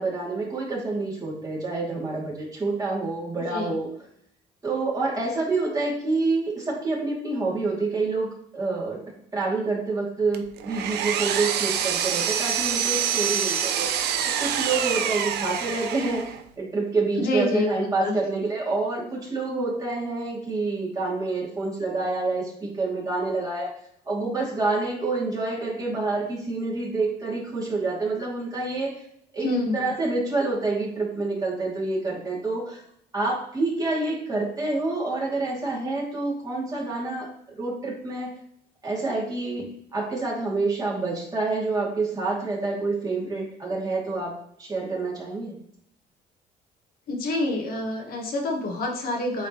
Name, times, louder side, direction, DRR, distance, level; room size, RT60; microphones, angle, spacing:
voice 1, 0.0-3.9 4.6-9.0 9.3-23.7 24.0-29.0 29.3-32.8 33.1-38.3 38.8-39.7 39.9-45.6, right 3 dB, 20° right, -5 dB, 2.6 m, -27 dB
Power tool, 10.3-16.4, right 9 dB, 75° right, 0.7 m, -26 dB
voice 2, 17.2-18.1 29.4-29.9 47.1-49.5, left 2 dB, 60° left, 0 dB, 1.5 m, -27 dB
9.0 x 3.8 x 3.1 m, 0.68 s
cardioid pair, 110°, 17 cm